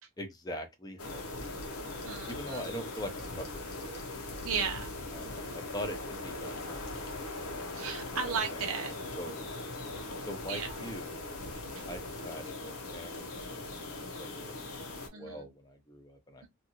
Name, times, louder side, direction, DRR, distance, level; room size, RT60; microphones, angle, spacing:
voice 1, 0.2-1.6 2.3-4.0 5.1-6.9 8.2-8.6 9.2-9.4 10.3-11.2 11.9-16.5, equal, 20° left, 0.6 m, -43 dB
sound 1, 1.0-15.1, left 2 dB, 90° left, 0.8 m, -40 dB
voice 2, 2.0-2.6 4.4-4.9 7.7-8.9 10.5-10.8 11.8-11.9 15.1-15.5, right 6 dB, 75° right, 0.7 m, -35 dB
2.7 x 2.5 x 2.8 m
head